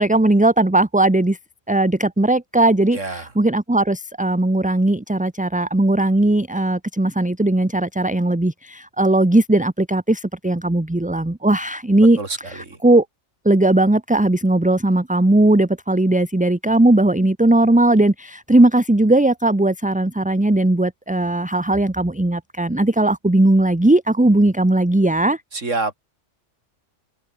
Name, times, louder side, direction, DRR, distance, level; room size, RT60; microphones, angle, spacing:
voice 1, 0.0-1.4 1.7-12.2 12.4-13.0 13.4-25.4, right 2 dB, 10° right, 0.7 m, -18 dB
voice 2, 2.9-3.3 12.2-12.8 25.5-25.9, right 3 dB, 85° right, 3.7 m, -27 dB
open air
omnidirectional pair, 1.2 m